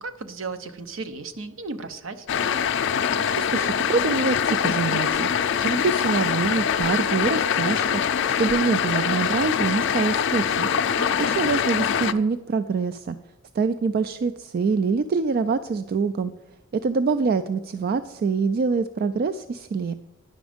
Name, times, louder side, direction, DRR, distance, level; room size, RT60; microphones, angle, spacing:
voice 1, 0.0-2.3 11.0-11.3, right 3 dB, 75° right, 9 dB, 0.7 m, -35 dB
sound 1, 2.3-12.1, left 7 dB, 65° left, 0.4 m, -23 dB
voice 2, 3.4-5.3 5.6-8.0 8.4-10.7 11.2-13.2 13.5-16.3 16.7-19.9, right 4 dB, 50° right, 11 dB, 0.3 m, -25 dB
10.0 x 6.1 x 5.0 m, 1.1 s
head